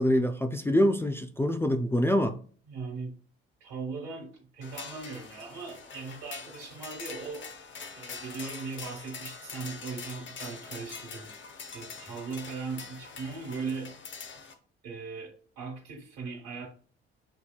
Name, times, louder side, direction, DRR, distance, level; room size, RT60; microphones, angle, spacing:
voice 1, 0.0-2.4, left 1 dB, 10° left, 0.4 m, -25 dB
voice 2, 2.7-3.1 3.6-7.5 7.9-11.3 11.7-14.4 14.8-16.7, right 4 dB, 65° right, 1.6 m, -39 dB
sound 1, 4.6-14.5, left 5 dB, 40° left, 0.8 m, -44 dB
8.0 x 2.8 x 2.3 m
figure-of-eight pair, 45°, 30 cm